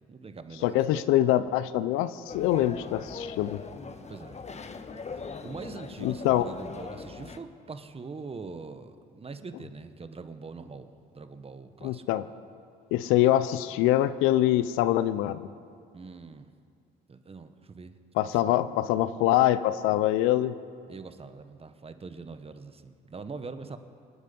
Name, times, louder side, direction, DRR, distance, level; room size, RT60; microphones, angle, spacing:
voice 1, 0.1-1.0 4.1-4.4 5.4-12.0 15.9-16.5 17.1-18.7 20.9-23.8, right 4 dB, 30° right, 9 dB, 1.4 m, -43 dB
voice 2, 0.6-3.6 6.0-6.5 11.8-12.3 12.9-15.5 18.2-20.5, left 13 dB, 75° left, 14 dB, 0.6 m, -24 dB
sound 1, 2.3-7.4, left 4 dB, 30° left, 1.3 m, -41 dB
26.5 x 9.6 x 5.4 m, 2.3 s
supercardioid pair, 70°, 21 cm